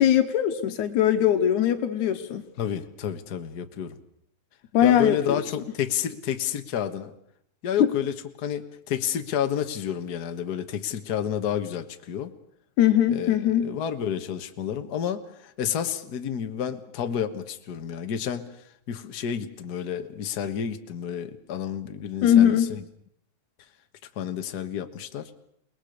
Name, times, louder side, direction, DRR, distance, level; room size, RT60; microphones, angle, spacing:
voice 1, 0.0-2.5 4.7-5.2 7.8-7.9 12.8-13.7 22.2-22.7, left 10 dB, 85° left, 7 dB, 2.5 m, -20 dB
voice 2, 2.6-4.0 4.8-7.1 7.6-12.3 13.1-18.5 18.9-22.8 24.1-25.3, left 9 dB, 45° left, 7 dB, 1.4 m, -30 dB
29.0 x 20.0 x 6.6 m, 0.71 s
omnidirectional pair, 3.3 m